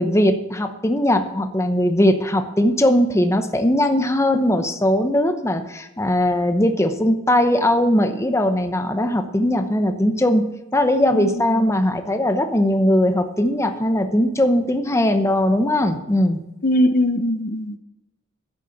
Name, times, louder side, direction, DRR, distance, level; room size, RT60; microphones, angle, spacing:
voice 1, 0.0-10.4 10.7-16.4, left 1 dB, 15° left, 7 dB, 0.9 m, -19 dB
voice 2, 11.1-11.8 16.6-17.8, left 1 dB, 45° left, 9 dB, 0.8 m, -21 dB
11.0 x 8.1 x 7.1 m, 0.97 s
head